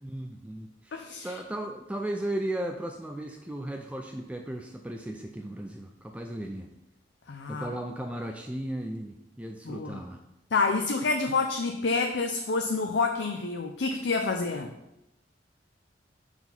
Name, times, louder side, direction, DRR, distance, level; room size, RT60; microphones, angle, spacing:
voice 1, 0.0-6.7 7.5-10.2, right 1 dB, 5° right, 3 dB, 0.4 m, -36 dB
voice 2, 0.9-1.3 7.3-7.7 9.7-10.0 10.5-14.7, left 4 dB, 80° left, 4 dB, 0.6 m, -28 dB
5.8 x 4.9 x 5.4 m, 0.87 s
head